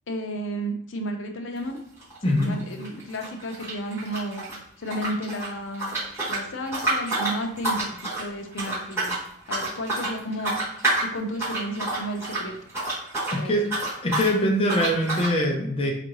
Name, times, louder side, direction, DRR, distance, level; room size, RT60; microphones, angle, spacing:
voice 1, 0.1-1.8 2.2-4.4 4.8-5.9 6.3-9.2 9.5-10.5 11.0-12.6 13.3-13.6, right 1 dB, 75° left, 4 dB, 0.6 m, -32 dB
sound 1, 1.6-1.8 2.0-4.6 4.9-13.4 13.6-14.3 14.7-15.3, right 2 dB, 15° right, 1.4 m, -29 dB
voice 2, 13.3-13.6 14.0-16.0, equal, 25° left, -1 dB, 0.5 m, -23 dB
4.5 x 2.5 x 3.0 m, 0.70 s
head